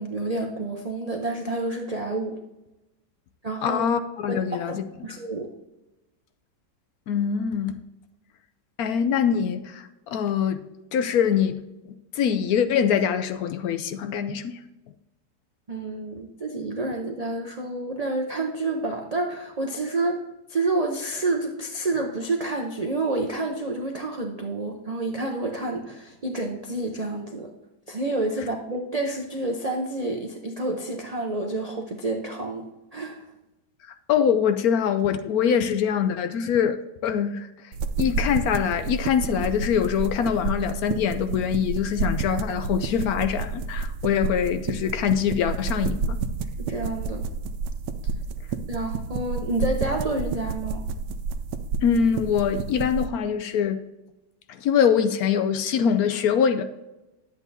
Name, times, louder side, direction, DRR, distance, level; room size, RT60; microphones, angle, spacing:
voice 1, 0.0-2.4 3.4-3.8 4.3-4.4 4.7-4.8 5.0-5.5 15.7-20.2 20.5-27.5 27.9-32.7 32.9-33.2 46.7-47.2 48.7-50.8, right 2 dB, 55° right, 0.4 m, -29 dB
voice 2, 3.6-4.8 7.1-7.8 8.8-10.6 10.9-11.6 11.9-14.6 34.1-36.8 37.0-37.5 38.0-46.2 51.8-53.8 54.5-56.6, left 8 dB, 70° left, 1.0 m, -23 dB
sound 1, 37.7-53.1, right 4 dB, 90° right, 1.3 m, -30 dB
10.5 x 8.1 x 2.7 m
omnidirectional pair, 1.8 m